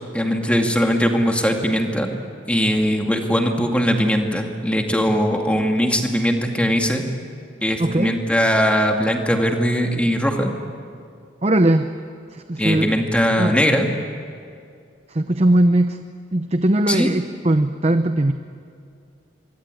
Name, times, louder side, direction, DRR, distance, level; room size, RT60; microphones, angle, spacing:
voice 1, 0.1-2.1 2.5-7.1 7.6-10.5 12.6-13.9 16.9-17.1, equal, 5° left, 2 dB, 2.3 m, -20 dB
voice 2, 7.8-8.2 11.4-11.9 12.3-12.9 13.4-13.8 15.1-16.0 16.3-18.3, right 1 dB, 35° right, 9 dB, 0.8 m, -19 dB
25.5 x 23.5 x 9.2 m, 2.4 s
head